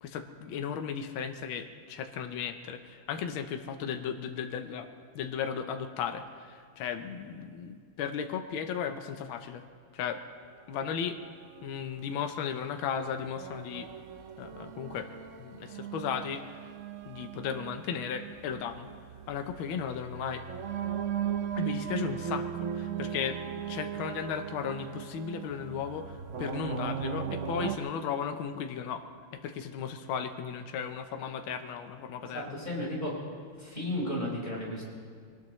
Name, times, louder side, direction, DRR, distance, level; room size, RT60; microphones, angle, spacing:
voice 1, 0.0-4.9 5.1-9.6 9.9-10.2 10.7-11.2 11.6-13.9 14.4-15.1 15.4-16.4 17.1-18.9 19.3-20.4 21.5-29.0 29.3-32.6, left 7 dB, 80° left, 7 dB, 1.6 m, -35 dB
sound 1, 11.2-27.8, right 8 dB, 80° right, 0.7 m, -38 dB
voice 2, 32.2-33.1 33.6-34.8, left 1 dB, 20° left, -5 dB, 4.8 m, -34 dB
23.0 x 19.0 x 3.1 m, 2.1 s
omnidirectional pair, 2.3 m